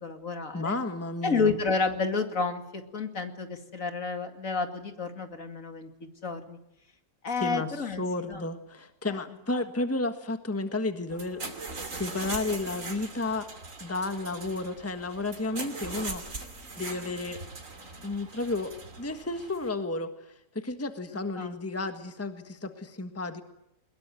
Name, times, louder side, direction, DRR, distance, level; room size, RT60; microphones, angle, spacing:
voice 1, 0.0-0.8 1.2-6.6 7.2-8.4 9.1-9.2 9.5-9.6 15.8-16.1 21.4-21.5, left 4 dB, 60° left, 6 dB, 2.6 m, -31 dB
voice 2, 0.5-1.6 7.4-7.7 8.0-11.4 11.9-13.5 13.8-16.2 16.8-17.4 18.0-18.7 19.0-23.4, left 2 dB, 10° left, 8 dB, 1.5 m, -32 dB
sound 1, 11.1-19.7, right 3 dB, 55° right, 3.0 m, -41 dB
22.5 x 21.0 x 9.2 m, 0.85 s
omnidirectional pair, 1.6 m